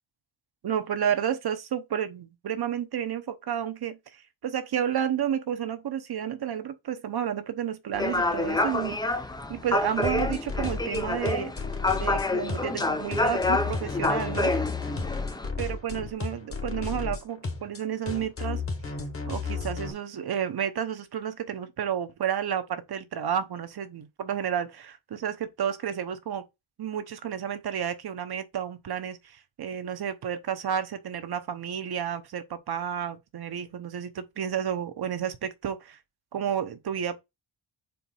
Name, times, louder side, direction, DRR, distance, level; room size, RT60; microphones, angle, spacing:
voice 1, 0.6-9.0 9.5-11.5 12.0-14.5 15.6-18.6 18.9-19.0 19.3-26.4 26.8-36.0 36.3-37.2, right 9 dB, 55° right, 0.9 m, -31 dB
sound 1, 7.9-15.5, left 2 dB, 10° left, 0.5 m, -28 dB
sound 2, 10.0-19.9, left 4 dB, 30° left, 1.2 m, -33 dB
4.6 x 4.1 x 5.5 m
wide cardioid pair, 160°, 46 cm